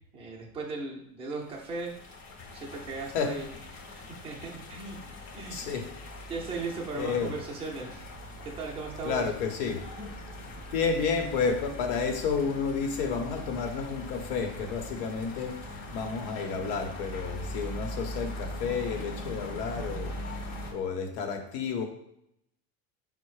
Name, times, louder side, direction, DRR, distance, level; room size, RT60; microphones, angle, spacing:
voice 1, 0.1-1.9 2.5-3.5 3.9-5.6 6.3-8.0 8.6-9.3, right 3 dB, 15° right, -3 dB, 0.4 m, -37 dB
sound 1, 1.4-20.7, left 1 dB, 35° left, 0.6 m, -41 dB
voice 2, 5.5-5.9 7.0-7.3 9.0-9.8 10.4-20.2 20.7-21.8, left 5 dB, 80° left, 4 dB, 0.9 m, -31 dB
4.6 x 2.1 x 4.6 m, 0.76 s
cardioid pair, 165°, 46 cm